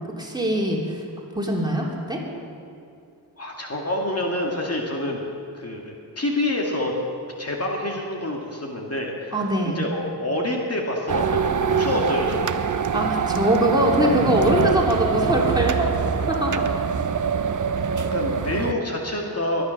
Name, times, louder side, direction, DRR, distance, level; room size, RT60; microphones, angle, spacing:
voice 1, 0.2-1.0 1.4-2.2 9.3-9.8 12.9-16.6, equal, 10° right, -2 dB, 3.1 m, -22 dB
voice 2, 3.4-5.2 5.5-7.0 7.4-12.9 18.0-19.6, left 1 dB, 35° left, -1 dB, 2.1 m, -27 dB
sound 1, 11.1-18.7, right 6 dB, 45° right, 0.7 m, -24 dB
23.0 x 9.7 x 6.5 m, 2.5 s
wide cardioid pair, 80°, 42 cm